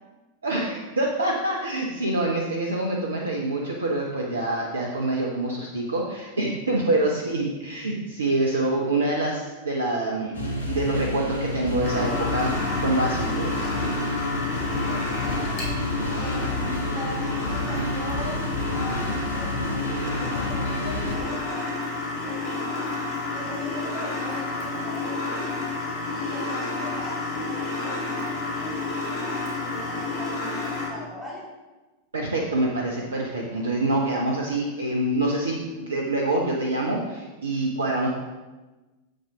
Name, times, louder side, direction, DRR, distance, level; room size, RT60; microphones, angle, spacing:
voice 1, 0.4-10.4 10.7-13.7 32.1-38.1, right 2 dB, 75° right, -1 dB, 1.0 m, -26 dB
sound 1, 10.3-21.1, left 1 dB, 70° left, 1.5 m, -29 dB
sound 2, 11.8-30.9, left 3 dB, 40° left, 2.8 m, -30 dB
voice 2, 14.7-15.7 16.1-18.4 18.7-21.7 22.2-22.9 23.3-25.5 26.1-31.4, equal, 20° right, -6 dB, 2.7 m, -40 dB
7.8 x 7.3 x 3.7 m, 1.2 s
figure-of-eight pair, 90°, 0 cm